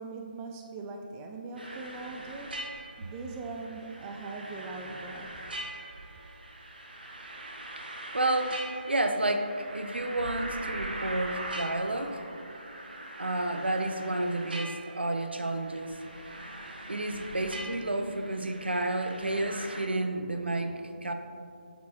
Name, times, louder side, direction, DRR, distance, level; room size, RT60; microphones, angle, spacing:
voice 1, 0.0-2.7 3.0-5.5, right 3 dB, 10° right, 2 dB, 0.3 m, -41 dB
sound 1, 1.6-19.8, right 1 dB, 60° right, 1.4 m, -42 dB
voice 2, 8.1-8.6 8.9-12.2 13.2-15.9 16.9-21.1, right 2 dB, 75° right, 6 dB, 0.7 m, -30 dB
8.5 x 7.2 x 3.0 m, 2.6 s
figure-of-eight pair, 150°, 6 cm